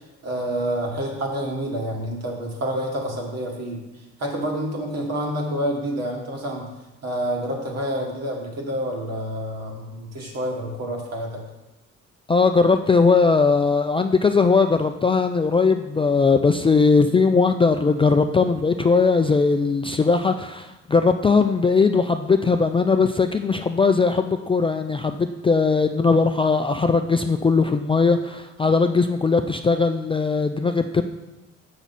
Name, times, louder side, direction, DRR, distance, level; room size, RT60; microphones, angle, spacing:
voice 1, 0.2-6.7 7.0-11.4, equal, 55° right, 0 dB, 1.8 m, -28 dB
voice 2, 12.3-31.0, left 4 dB, 20° left, 6 dB, 0.3 m, -19 dB
6.7 x 6.1 x 4.2 m, 1.0 s
cardioid pair, 90°, 30 cm